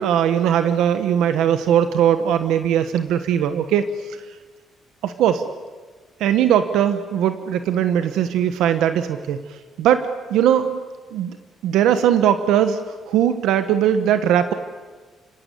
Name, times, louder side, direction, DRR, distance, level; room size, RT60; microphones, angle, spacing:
voice 1, 0.0-3.8 5.0-5.4 6.2-9.4 9.8-10.8 11.1-11.4 11.6-12.8 13.1-14.5, right 9 dB, 90° right, 9 dB, 1.2 m, -19 dB
29.5 x 17.0 x 8.4 m, 1.4 s
cardioid pair, 90°, 0 cm